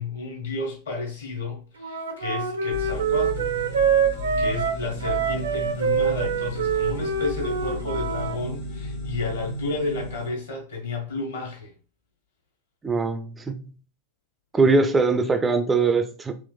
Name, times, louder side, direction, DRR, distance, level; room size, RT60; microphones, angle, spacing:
voice 1, 0.0-3.5 4.4-11.7, left 3 dB, 65° left, 1.3 m, -32 dB
Wind instrument woodwind instrument, 1.8-8.4, right 6 dB, 70° right, 0.5 m, -25 dB
sound 1, 2.7-10.3, left 2 dB, 50° left, 1.0 m, -34 dB
voice 2, 12.8-13.6 14.5-16.4, right 3 dB, 15° right, 0.3 m, -21 dB
3.3 x 3.0 x 2.3 m
figure-of-eight pair, 90°, 0 cm